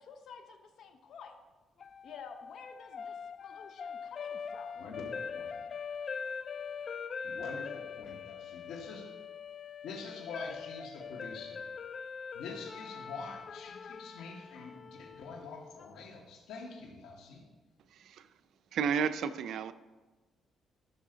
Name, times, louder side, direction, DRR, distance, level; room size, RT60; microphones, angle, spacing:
voice 1, 0.0-1.4 2.0-4.7, left 6 dB, 65° left, 0.8 m, -50 dB
sound 1, 1.8-15.9, left 6 dB, 50° left, 0.3 m, -43 dB
voice 2, 4.8-5.6 7.2-9.1 9.8-11.6 12.3-17.4, left 4 dB, 85° left, 2.1 m, -45 dB
voice 3, 17.9-18.3 18.7-19.7, right 7 dB, 75° right, 0.5 m, -32 dB
13.0 x 6.3 x 4.0 m
cardioid pair, 90°, 0 cm